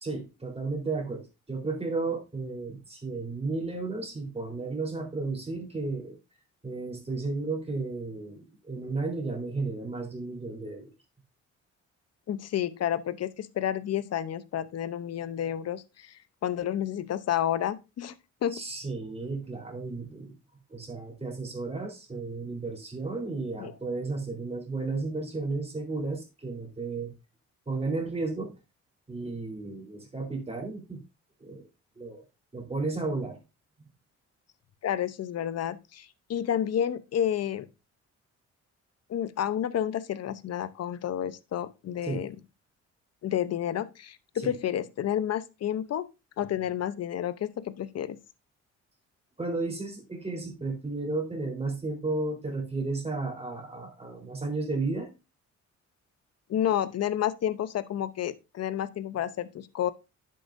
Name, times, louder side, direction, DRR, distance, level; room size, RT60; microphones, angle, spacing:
voice 1, 0.0-6.2 6.6-10.9 18.5-20.3 20.7-27.1 27.7-28.5 29.1-31.0 31.4-31.6 32.0-32.2 32.5-33.4 42.1-42.2 44.4-44.5 49.4-55.1, right 3 dB, 20° right, 3.8 m, -33 dB
voice 2, 12.3-18.1 18.4-18.6 23.6-23.7 34.8-37.7 39.1-42.4 43.2-46.1 46.4-48.2 56.5-59.9, left 10 dB, 55° left, 0.8 m, -30 dB
10.0 x 7.8 x 2.6 m
cardioid pair, 90°, 30 cm